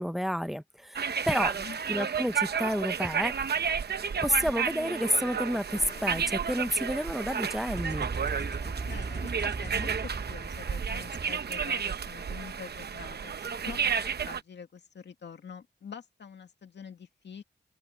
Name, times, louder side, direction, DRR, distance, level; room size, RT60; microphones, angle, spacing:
voice 1, 0.0-1.5 1.9-3.3 4.2-8.1, equal, ahead, 0.8 m, -30 dB
sound 1, 0.9-14.4, right 6 dB, 60° right, 0.9 m, -32 dB
voice 2, 1.3-1.8 8.9-14.0 14.2-17.4, left 6 dB, 70° left, 2.2 m, -45 dB
sound 2, 3.8-4.6 5.5-9.7, left 4 dB, 45° left, 2.7 m, -56 dB
sound 3, 7.7-12.0, right 3 dB, 40° right, 1.8 m, -37 dB
open air
wide cardioid pair, 105°, 19 cm